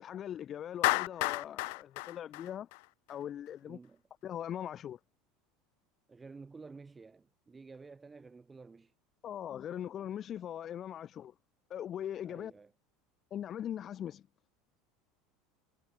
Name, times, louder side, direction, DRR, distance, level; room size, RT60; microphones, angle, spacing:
voice 1, 0.0-2.7 3.1-3.8 4.2-5.0 9.2-11.3 11.7-12.5 13.3-14.2, left 10 dB, 40° left, 2.5 m, -40 dB
Clapping, 0.8-3.1, left 30 dB, 65° left, 0.4 m, -32 dB
voice 2, 3.6-4.0 6.1-8.9 12.2-12.7, right 4 dB, 20° right, 3.4 m, -52 dB
figure-of-eight pair, 75°, 0 cm